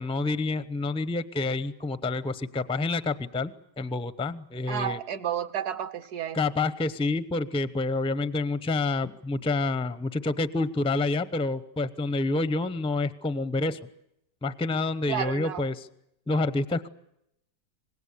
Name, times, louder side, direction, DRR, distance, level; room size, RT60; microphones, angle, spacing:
voice 1, 0.0-5.0 6.3-13.8 14.4-15.9 16.3-16.9, left 3 dB, 5° left, 15 dB, 0.4 m, -28 dB
voice 2, 4.7-6.4 15.1-15.7, right 10 dB, 65° right, 13 dB, 1.6 m, -31 dB
26.0 x 20.0 x 8.4 m, 0.80 s
omnidirectional pair, 1.8 m